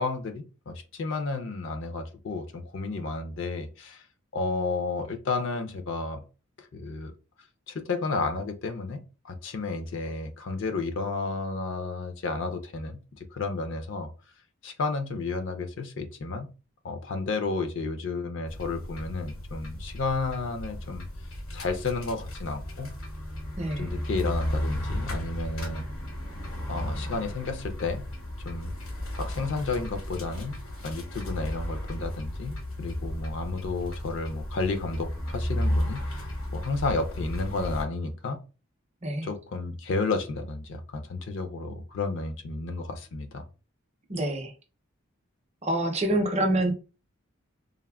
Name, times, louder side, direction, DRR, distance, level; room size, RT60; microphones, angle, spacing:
voice 1, 0.0-4.1 4.3-6.2 6.6-7.1 7.7-14.1 14.6-16.5 16.8-21.0 21.5-22.9 23.8-25.9 26.7-28.1 28.4-28.7 29.2-30.6 30.8-38.4 39.2-43.4, left 3 dB, 55° left, 0.4 m, -32 dB
sound 1, 18.5-37.8, left 1 dB, 75° left, 0.9 m, -34 dB
voice 2, 23.6-23.9 39.0-39.3 44.1-44.5 45.6-46.7, right 1 dB, 30° right, 0.5 m, -26 dB
3.4 x 2.0 x 2.2 m
head